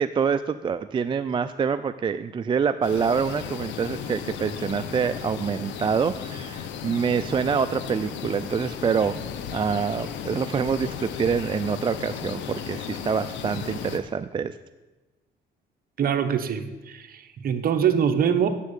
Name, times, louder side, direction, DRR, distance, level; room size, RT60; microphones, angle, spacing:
voice 1, 0.0-9.2 9.5-14.6, right 6 dB, 25° right, 11 dB, 0.4 m, -26 dB
sound 1, 2.8-14.0, left 7 dB, 85° left, 1.0 m, -35 dB
voice 2, 16.0-18.5, right 8 dB, 50° right, 7 dB, 1.1 m, -24 dB
8.3 x 7.7 x 8.1 m, 1.1 s
cardioid pair, 110°, 19 cm